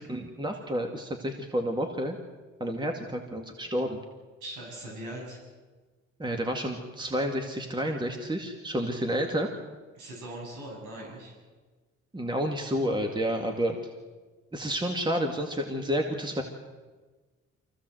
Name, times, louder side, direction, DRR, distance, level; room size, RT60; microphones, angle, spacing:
voice 1, 0.0-2.2 2.6-4.0 6.2-9.5 12.1-13.8 14.5-16.4, equal, 15° right, 3 dB, 2.2 m, -30 dB
voice 2, 4.4-5.4 10.0-11.3, right 1 dB, 85° right, -2 dB, 7.1 m, -40 dB
24.0 x 16.0 x 7.9 m, 1.3 s
cardioid pair, 90°, 30 cm